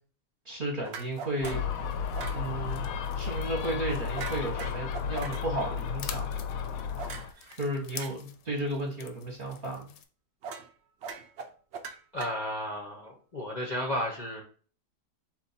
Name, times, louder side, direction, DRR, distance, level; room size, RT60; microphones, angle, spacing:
voice 1, 0.4-1.6 2.3-2.8 3.1-6.3 7.6-9.9, right 1 dB, 40° right, -1 dB, 0.9 m, -33 dB
sound 1, 0.8-1.7 2.1-2.4 4.1-5.4 7.0-8.1 10.4-10.7 11.0-12.7, right 6 dB, 80° right, 0.6 m, -41 dB
sound 2, 0.9-10.0, left 9 dB, 90° left, 1.2 m, -49 dB
Gull seagull, 1.4-7.3, left 6 dB, 70° left, 0.9 m, -33 dB
voice 2, 12.1-14.4, equal, 50° left, -1 dB, 0.5 m, -33 dB
4.4 x 2.5 x 4.1 m, 0.41 s
omnidirectional pair, 1.8 m